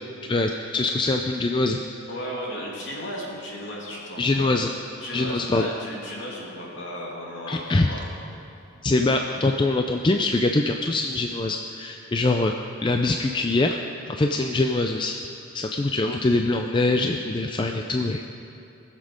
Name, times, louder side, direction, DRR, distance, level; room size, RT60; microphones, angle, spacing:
voice 1, 0.3-1.8 4.2-4.7 5.1-5.7 7.5-7.9 8.8-12.5 12.8-13.8 14.1-15.2 15.5-18.2, left 2 dB, 20° left, 4 dB, 0.3 m, -23 dB
voice 2, 2.1-4.6 5.0-8.0, equal, 60° left, -4 dB, 2.6 m, -35 dB
20.0 x 7.5 x 5.1 m, 2.8 s
head